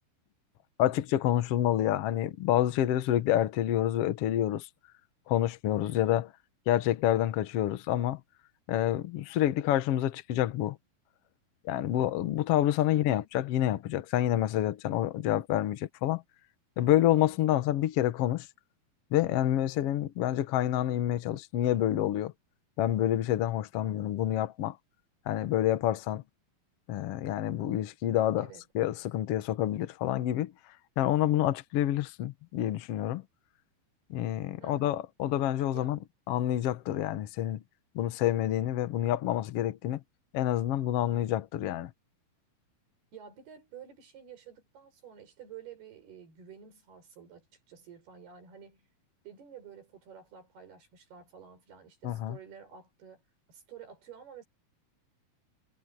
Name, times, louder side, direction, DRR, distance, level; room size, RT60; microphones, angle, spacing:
voice 1, 0.8-4.7 5.3-6.3 6.7-8.2 8.7-10.8 11.6-16.2 16.8-18.5 19.1-22.3 22.8-24.8 25.3-26.2 26.9-28.5 28.7-30.5 31.0-33.2 34.1-36.0 36.3-37.6 37.9-40.0 40.3-41.9 52.0-52.4, left 12 dB, 85° left, 1.3 m, -28 dB
voice 2, 5.8-6.2 12.9-13.3 17.1-17.7 28.4-28.6 34.6-35.0 35.7-35.9 43.1-48.9 49.2-53.2 53.5-54.5, right 7 dB, 85° right, 7.5 m, -50 dB
omnidirectional pair, 4.4 m